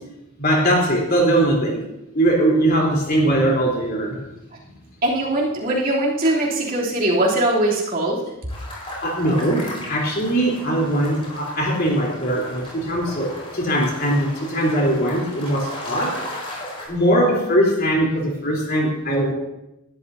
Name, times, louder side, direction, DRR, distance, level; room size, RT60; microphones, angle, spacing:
voice 1, 0.4-1.8 2.1-4.2 9.0-16.2 16.9-19.3, right 1 dB, 45° left, -1 dB, 3.8 m, -20 dB
voice 2, 5.0-8.2, right 1 dB, 40° right, -4 dB, 3.3 m, -21 dB
sound 1, 8.5-16.9, left 1 dB, 25° left, 5.0 m, -36 dB
20.0 x 12.5 x 2.8 m, 0.90 s
head